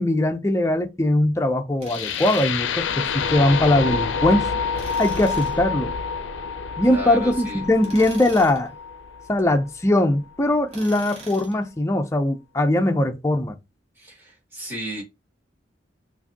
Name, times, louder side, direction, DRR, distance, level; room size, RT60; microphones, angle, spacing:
voice 1, 0.0-4.5 5.0-5.9 6.8-8.7 9.3-13.6, left 1 dB, 15° left, 0.5 m, -21 dB
Tools, 1.8-2.7 4.7-5.6 7.8-8.7 10.7-11.6, right 3 dB, 35° right, 1.3 m, -42 dB
sound 1, 1.9-9.9, left 5 dB, 80° left, 0.5 m, -28 dB
voice 2, 6.8-7.6 14.0-15.0, equal, 10° right, 2.0 m, -34 dB
4.6 x 2.6 x 2.8 m
head